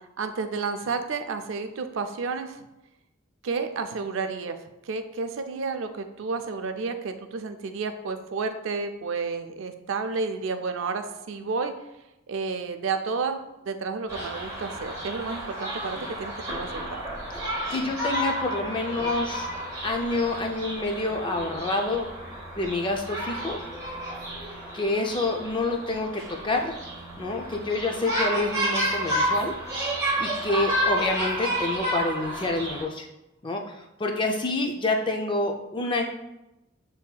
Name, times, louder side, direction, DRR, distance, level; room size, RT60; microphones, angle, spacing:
voice 1, 0.2-2.6 3.4-4.6 4.8-11.7 12.3-13.4 13.7-17.0, right 4 dB, 65° right, 7 dB, 0.4 m, -31 dB
sound 1, 14.1-32.8, right 1 dB, 15° right, 0.8 m, -31 dB
voice 2, 17.7-19.5 19.8-22.1 22.6-23.6 24.7-26.8 27.2-29.5 30.2-33.1 33.4-36.0, left 2 dB, 20° left, 3 dB, 0.4 m, -27 dB
7.1 x 2.7 x 2.2 m, 0.94 s
head